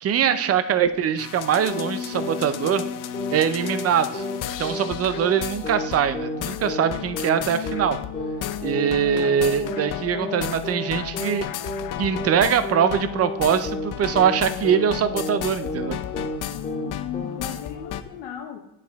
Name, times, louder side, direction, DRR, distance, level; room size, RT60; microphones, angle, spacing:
voice 1, 0.0-2.8 3.3-4.2 4.6-8.0 8.6-11.5 12.0-16.0, right 8 dB, 35° right, 12 dB, 0.5 m, -22 dB
sound 1, 1.2-18.0, left 10 dB, 50° left, 0.5 m, -33 dB
sound 2, 1.6-1.9 2.1-2.4 2.6-2.9 3.1-3.4 3.6-3.9 4.1-4.4 4.6-4.9 5.1-5.4 5.6-5.9 6.1-6.4 6.6-6.9 7.1-7.4 7.6-7.9 8.1-8.4 8.6-8.9 9.1-9.4 9.6-9.9 10.1-10.4 10.6-10.9 11.1-11.4 11.6-11.9 12.1-12.4 12.6-12.9 13.1-13.4 13.6-13.9 14.1-14.4 14.6-14.9 15.1-15.4 15.6-16.4 16.6-16.9 17.1-17.4, left 1 dB, 15° left, 1.8 m, -31 dB
voice 2, 16.5-18.6, left 11 dB, 80° left, 0 dB, 0.9 m, -36 dB
8.9 x 4.8 x 3.5 m, 0.87 s
cardioid pair, 115°, 42 cm